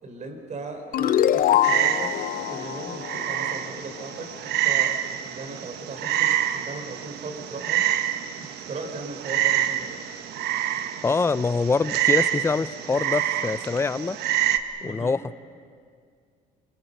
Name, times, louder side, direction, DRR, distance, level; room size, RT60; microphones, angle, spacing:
voice 1, 0.0-7.9 8.3-10.0 14.8-15.2, right 2 dB, 45° right, 5 dB, 4.3 m, -38 dB
sound 1, 0.9-4.2, left 11 dB, 55° left, 0.7 m, -24 dB
Frog, 1.6-14.6, right 12 dB, 75° right, 1.2 m, -27 dB
voice 2, 11.0-14.2 14.8-15.4, left 4 dB, 15° left, 15 dB, 0.6 m, -25 dB
25.0 x 25.0 x 6.7 m, 2.2 s
cardioid pair, 110°, 17 cm